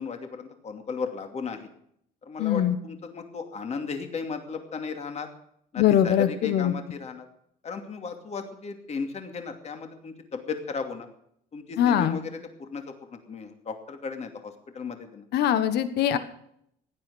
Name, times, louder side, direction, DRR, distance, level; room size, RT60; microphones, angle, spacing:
voice 1, 0.0-1.7 2.3-5.3 5.7-7.3 7.6-11.1 11.5-15.2, left 5 dB, 40° left, 5 dB, 2.5 m, -35 dB
voice 2, 2.4-2.8 5.8-6.7 11.8-12.2 15.3-16.2, left 10 dB, 75° left, 11 dB, 1.4 m, -22 dB
16.0 x 11.0 x 6.4 m, 0.71 s
cardioid pair, 110°, 17 cm